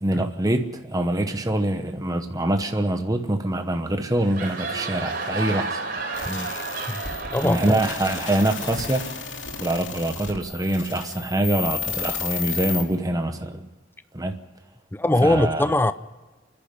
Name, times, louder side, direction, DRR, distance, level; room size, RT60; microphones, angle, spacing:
voice 1, 0.0-5.8 7.4-9.1 9.6-13.7 14.1-14.3 15.2-15.6, right 1 dB, 20° right, 6 dB, 1.0 m, -24 dB
sound 1, 4.1-9.6, right 3 dB, 50° right, 3.9 m, -33 dB
sound 2, 6.1-12.8, left 6 dB, 70° left, 3.1 m, -33 dB
voice 2, 7.3-7.6 14.9-15.9, left 1 dB, 10° left, 13 dB, 0.5 m, -21 dB
28.5 x 10.5 x 9.6 m, 1.3 s
head